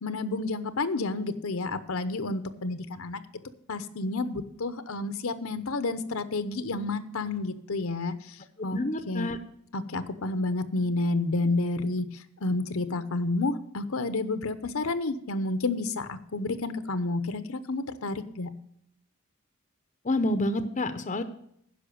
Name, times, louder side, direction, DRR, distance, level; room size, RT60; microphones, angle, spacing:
voice 1, 0.0-3.2 3.7-8.8 9.1-9.3 9.7-18.5, left 2 dB, 70° left, 11 dB, 0.8 m, -30 dB
voice 2, 8.6-9.4 20.0-21.2, left 1 dB, 35° left, 10 dB, 0.7 m, -28 dB
10.0 x 6.1 x 8.5 m, 0.71 s
head